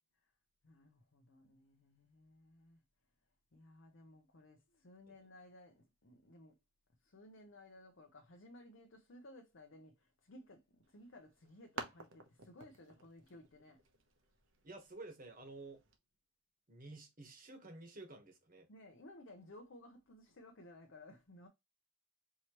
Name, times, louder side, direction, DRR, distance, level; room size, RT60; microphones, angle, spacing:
voice 1, 0.6-2.8 3.5-6.6 7.0-13.8 18.7-21.5, left 1 dB, 60° left, 0.7 m, -58 dB
sound 1, 10.8-16.0, right 3 dB, 60° right, 0.9 m, -53 dB
voice 2, 14.6-15.8 16.7-18.7, right 2 dB, 40° right, 1.2 m, -52 dB
4.7 x 2.9 x 2.9 m
head